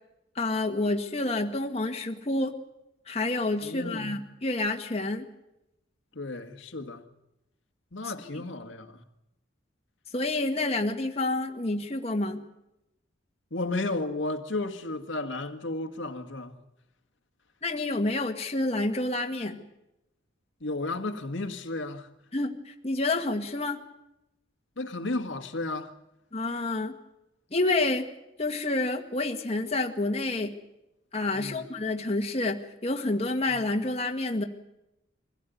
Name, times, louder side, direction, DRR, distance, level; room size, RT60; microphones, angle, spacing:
voice 1, 0.4-2.5 3.1-5.3 10.1-12.4 17.6-19.6 22.3-23.8 26.3-26.9 27.5-28.1 28.4-30.5 31.1-34.4, left 2 dB, 30° left, 1.9 m, -28 dB
voice 2, 3.6-4.2 6.2-7.0 7.9-9.0 13.5-16.6 20.6-22.1 24.8-25.9 31.3-31.6 33.5-33.6, left 2 dB, 70° left, 1.9 m, -33 dB
23.5 x 16.5 x 9.3 m
head